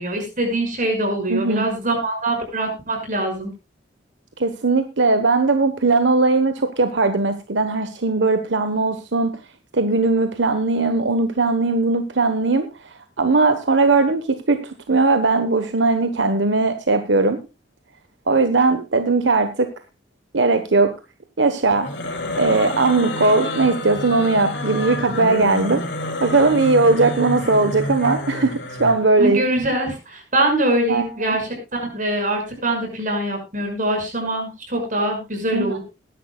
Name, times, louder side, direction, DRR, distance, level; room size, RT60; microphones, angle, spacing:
voice 1, 0.0-3.5 29.2-35.8, right 1 dB, 45° right, 3 dB, 6.0 m, -23 dB
voice 2, 1.3-1.7 4.4-9.4 9.7-17.4 18.3-19.7 20.3-20.9 21.4-21.9 22.3-25.8 26.2-29.4 30.9-31.4 35.5-35.8, right 3 dB, 85° right, 8 dB, 1.2 m, -19 dB
sound 1, 21.7-29.1, left 1 dB, 75° left, 3.8 m, -28 dB
20.5 x 11.0 x 2.3 m, 0.27 s
head